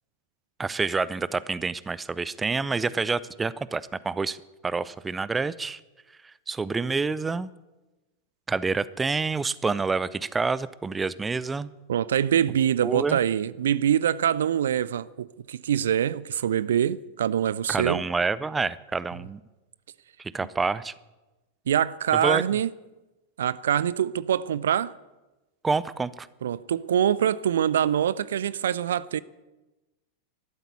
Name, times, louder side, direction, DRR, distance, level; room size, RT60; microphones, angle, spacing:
voice 1, 0.6-4.4 4.6-5.8 6.5-7.5 8.5-11.7 12.8-13.2 17.7-19.4 20.3-20.9 22.2-22.4 25.6-26.3, right 4 dB, 15° right, 0.6 m, -27 dB
voice 2, 11.9-18.0 21.7-22.7 23.4-24.9 26.4-29.2, right 9 dB, 60° right, 0.4 m, -24 dB
13.0 x 12.0 x 8.3 m
figure-of-eight pair, 90°, 0 cm